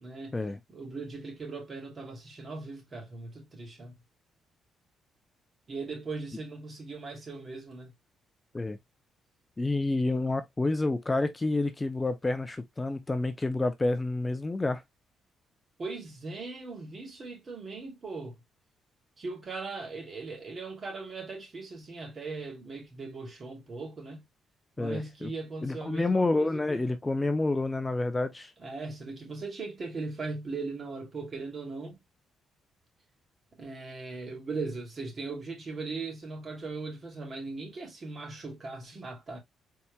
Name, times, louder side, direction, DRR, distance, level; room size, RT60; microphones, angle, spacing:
voice 1, 0.0-0.4 0.7-4.0 5.7-7.9 15.8-18.4 19.2-24.2 24.8-26.8 28.6-32.0 33.6-39.4, right 3 dB, 40° right, 2.6 m, -39 dB
voice 2, 9.6-14.8 24.8-25.3 25.6-28.5, left 2 dB, 20° left, 0.6 m, -29 dB
4.7 x 4.3 x 2.2 m
cardioid pair, 90°, 0 cm